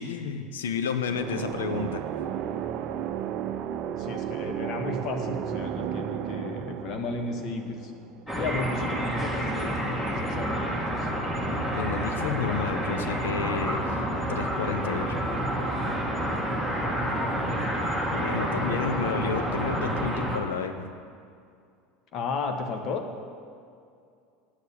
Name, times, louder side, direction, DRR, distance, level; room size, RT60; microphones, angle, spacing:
voice 1, 0.0-2.0 11.7-14.0 14.3-15.2 18.1-20.9, left 6 dB, 75° left, 8 dB, 0.8 m, -31 dB
sound 1, 1.1-8.7, right 9 dB, 50° right, 0.5 m, -33 dB
voice 2, 3.9-7.9 8.4-11.1 13.7-14.1 16.7-17.8 22.1-23.0, left 3 dB, 50° left, 4 dB, 1.4 m, -34 dB
sound 2, 8.3-20.4, equal, 10° left, 2.2 m, -29 dB
9.6 x 6.9 x 8.6 m, 2.3 s
hypercardioid pair, 75°, 0 cm